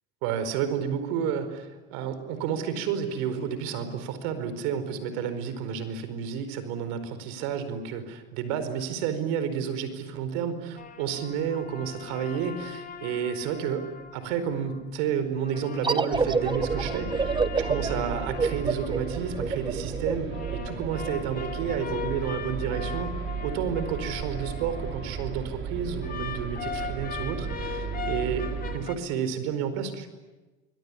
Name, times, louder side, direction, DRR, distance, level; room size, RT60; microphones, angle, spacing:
voice 1, 0.2-13.9 14.1-30.1, right 7 dB, 75° right, 11 dB, 4.7 m, -31 dB
sound 1, 10.8-14.8 15.4-19.8 20.3-25.4 26.0-29.0, left 7 dB, 30° left, 1.9 m, -40 dB
sound 2, 15.8-21.1, right 4 dB, 15° right, 1.1 m, -28 dB
sound 3, 16.1-28.8, right 6 dB, 40° right, 5.9 m, -35 dB
26.5 x 22.5 x 9.9 m, 1.2 s
supercardioid pair, 110°, 31 cm